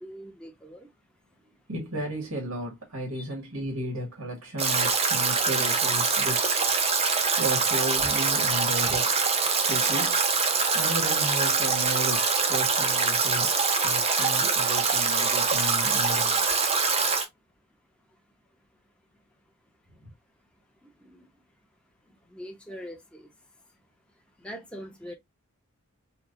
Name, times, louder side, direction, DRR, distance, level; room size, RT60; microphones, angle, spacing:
voice 1, 0.0-0.9 3.1-3.3 21.0-21.3 22.3-23.3 24.4-25.1, equal, 5° left, 0.9 m, -42 dB
voice 2, 1.7-6.7 7.4-9.2 9.6-13.5 13.8-16.5 20.0-20.1, right 1 dB, 85° right, 1.6 m, -34 dB
Stream / Drip / Trickle dribble, 4.6-17.2, right 4 dB, 30° right, 0.7 m, -24 dB
4.5 x 2.4 x 2.5 m
head